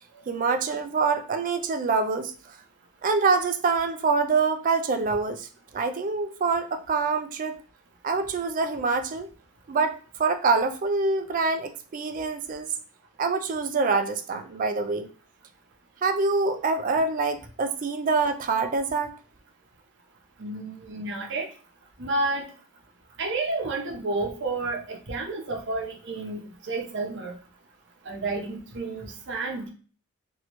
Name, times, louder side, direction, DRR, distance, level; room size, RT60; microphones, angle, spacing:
voice 1, 0.3-2.6 3.0-5.5 5.7-7.6 8.0-9.3 9.7-12.7 13.2-15.1 16.0-19.2, right 4 dB, 35° right, 8 dB, 0.3 m, -25 dB
voice 2, 20.4-21.5 22.0-22.5 23.2-27.3 28.1-29.7, right 2 dB, 55° right, 0 dB, 0.7 m, -30 dB
2.9 x 2.6 x 3.1 m, 0.39 s
head